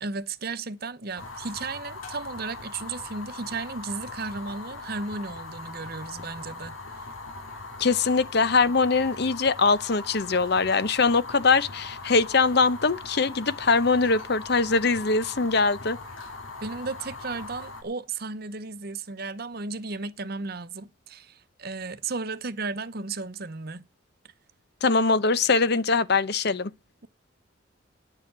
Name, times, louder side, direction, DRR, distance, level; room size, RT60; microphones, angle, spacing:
voice 1, 0.0-7.0 16.6-23.9, right 3 dB, 50° right, 0.9 m, -34 dB
Fire, 1.2-17.8, left 3 dB, 85° left, 2.7 m, -40 dB
voice 2, 7.8-16.0 24.8-26.7, left 4 dB, 55° left, 0.8 m, -22 dB
9.9 x 7.2 x 8.6 m
head